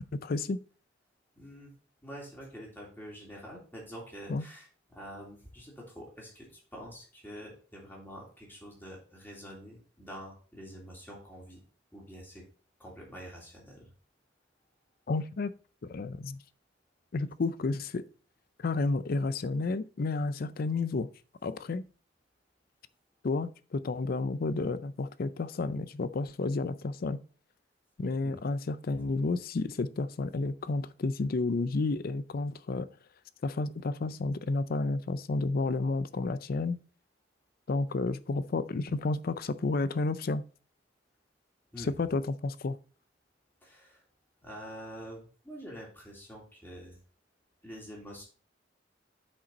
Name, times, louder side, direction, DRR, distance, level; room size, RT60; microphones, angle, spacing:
voice 1, 0.1-0.6 4.3-4.4 15.1-15.5 15.8-16.4 17.1-18.0 18.6-21.1 21.4-21.8 23.2-27.2 28.0-32.9 33.4-36.8 37.7-40.4 41.8-42.8, left 3 dB, 55° left, 0.5 m, -31 dB
voice 2, 1.3-1.7 2.0-11.6 11.9-12.4 12.8-13.9 28.2-28.4 41.7-41.9 43.6-44.0 44.4-47.0 47.6-48.2, equal, 10° left, 3.1 m, -46 dB
8.8 x 5.2 x 4.1 m
head